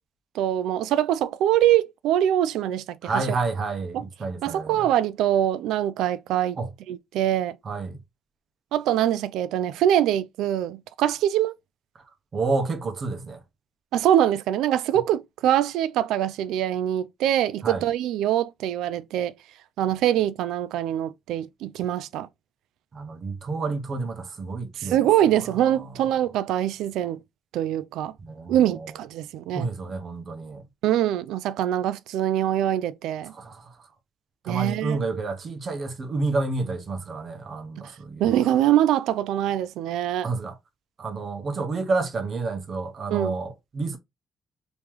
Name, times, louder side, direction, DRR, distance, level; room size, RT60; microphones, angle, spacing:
voice 1, 0.3-3.2 3.9-4.0 4.4-6.6 6.9-7.6 8.7-11.5 13.9-19.3 19.8-22.3 24.8-27.2 27.5-28.1 28.5-29.7 30.8-33.3 34.5-35.0 38.2-40.3 43.1-43.3, right 11 dB, 90° right, 0.3 m, -23 dB
voice 2, 3.0-4.9 6.6-6.7 7.6-8.0 12.3-13.4 17.6-17.8 22.9-25.0 25.6-26.0 28.3-28.9 29.5-30.6 33.3-33.9 34.4-38.6 40.2-40.6 41.0-44.0, right 3 dB, 45° right, 1.0 m, -30 dB
3.1 x 3.0 x 3.5 m
cardioid pair, 90°, 0 cm